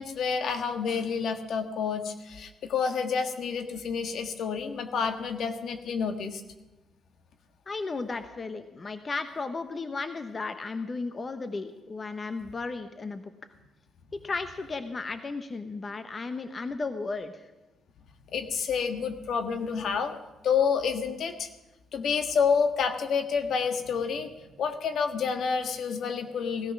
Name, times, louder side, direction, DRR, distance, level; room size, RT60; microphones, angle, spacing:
voice 1, 0.0-6.4 18.3-20.1 20.4-21.5 21.9-26.7, left 6 dB, 65° left, 7 dB, 1.5 m, -29 dB
voice 2, 7.7-13.3 14.1-17.5, left 3 dB, 35° left, 9 dB, 1.0 m, -34 dB
18.0 x 13.5 x 6.0 m, 1.1 s
cardioid pair, 90°, 0 cm